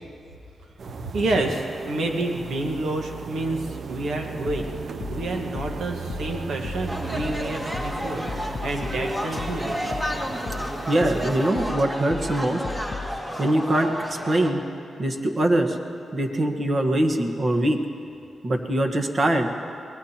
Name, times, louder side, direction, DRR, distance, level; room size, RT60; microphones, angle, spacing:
sound 1, 0.8-11.5, right 5 dB, 65° right, 0.5 m, -37 dB
voice 1, 1.1-4.7 5.1-10.0, right 2 dB, 90° right, 2 dB, 1.6 m, -29 dB
sound 2, 4.5-13.2, left 4 dB, 50° left, 0.5 m, -36 dB
sound 3, 6.9-14.5, equal, 20° right, 1.9 m, -31 dB
voice 2, 10.9-12.6 13.4-14.6 15.0-15.8 16.1-17.8 18.4-19.5, right 1 dB, 45° right, 4 dB, 1.4 m, -23 dB
24.0 x 19.5 x 3.0 m, 2.5 s
cardioid pair, 80°, 0 cm